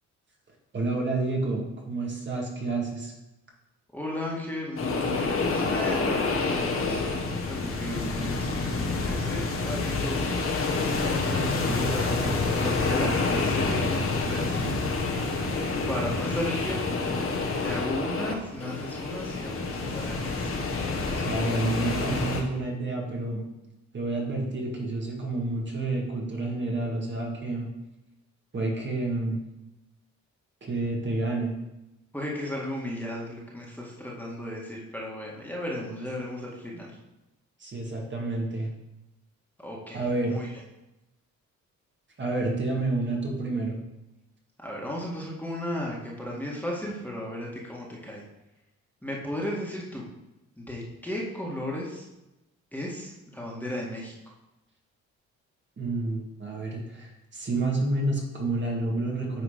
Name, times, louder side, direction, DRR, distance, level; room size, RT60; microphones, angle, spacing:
voice 1, 0.7-3.1 21.2-23.4 23.9-27.7 28.5-29.4 30.6-31.5 37.6-38.7 39.9-40.4 42.2-43.8 55.8-59.4, right 2 dB, 40° right, -1 dB, 2.1 m, -29 dB
voice 2, 3.9-10.3 11.0-14.8 15.9-17.1 17.6-20.6 32.1-37.0 39.6-40.6 44.6-48.2 49.0-50.1 50.6-52.1 52.7-54.3, left 1 dB, 5° left, -3 dB, 1.9 m, -35 dB
sound 1, 4.8-22.4, left 3 dB, 45° left, 1.5 m, -28 dB
9.5 x 3.8 x 5.1 m, 0.95 s
cardioid pair, 90°, 30 cm